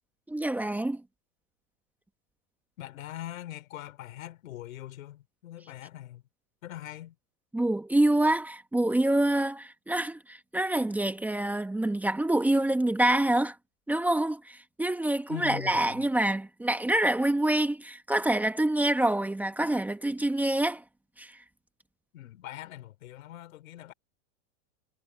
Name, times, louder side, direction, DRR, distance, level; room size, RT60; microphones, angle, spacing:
voice 1, 0.3-1.0 7.5-13.6 13.9-20.8 21.2-21.4, right 1 dB, 5° right, 1.3 m, -26 dB
voice 2, 2.8-6.2 6.6-7.2 15.3-16.1 22.1-23.9, left 13 dB, 80° left, 3.4 m, -42 dB
supercardioid pair, 150°, 40 cm